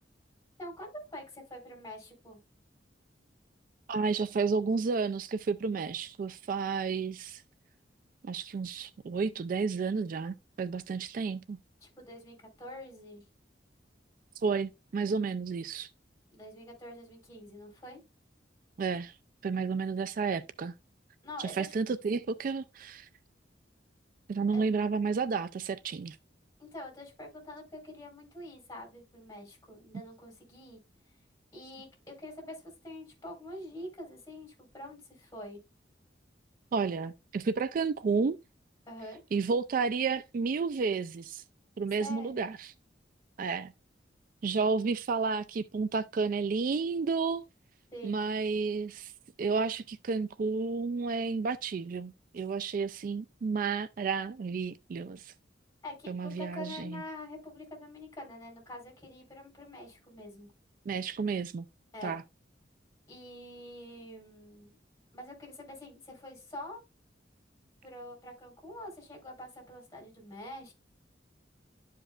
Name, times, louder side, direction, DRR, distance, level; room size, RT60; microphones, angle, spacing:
voice 1, 0.6-2.4 11.8-13.2 16.3-18.0 21.2-21.7 24.5-24.7 26.6-30.8 31.5-35.6 38.8-39.2 42.0-42.5 47.9-48.2 55.8-60.5 61.9-62.1 63.1-64.8 65.1-66.8 67.8-70.7, left 1 dB, 20° left, 4.2 m, -45 dB
voice 2, 3.9-7.4 8.2-11.6 14.4-15.9 18.8-19.1 19.4-20.7 21.4-23.1 24.3-26.2 36.7-38.4 39.3-41.4 41.8-42.7 43.4-43.7 44.4-47.4 48.0-49.1 49.4-55.3 56.1-57.0 60.9-61.6 62.0-62.2, right 4 dB, 50° right, 0.3 m, -31 dB
12.0 x 5.1 x 2.4 m
head